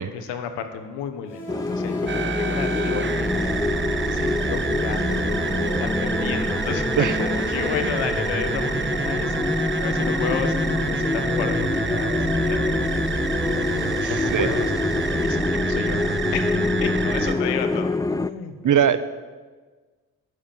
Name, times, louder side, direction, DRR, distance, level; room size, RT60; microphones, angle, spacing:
voice 1, 0.1-3.6 4.1-5.5 5.8-14.7 15.1-19.0, left 7 dB, 80° left, 8 dB, 1.3 m, -33 dB
sound 1, 1.3-15.2, equal, 30° left, 4.8 m, -36 dB
sound 2, 1.5-18.3, left 3 dB, 10° left, 0.4 m, -26 dB
sound 3, 2.1-17.4, right 4 dB, 25° right, 1.1 m, -28 dB
voice 2, 14.0-14.5 18.6-19.0, right 9 dB, 45° right, 14 dB, 0.9 m, -21 dB
10.0 x 9.3 x 7.2 m, 1.4 s
supercardioid pair, 55°, 41 cm